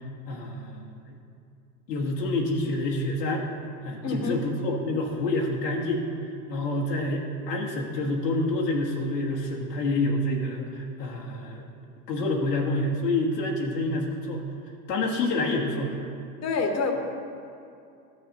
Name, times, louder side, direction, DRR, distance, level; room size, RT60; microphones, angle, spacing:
voice 1, 0.3-1.1 1.9-3.4 3.8-6.1 6.5-11.7 12.1-14.4 14.9-16.0, left 2 dB, 85° left, -3 dB, 1.4 m, -28 dB
voice 2, 4.0-4.4 16.4-16.9, left 3 dB, 35° left, 4 dB, 1.2 m, -27 dB
13.0 x 6.5 x 2.9 m, 2.5 s
hypercardioid pair, 95°, 47 cm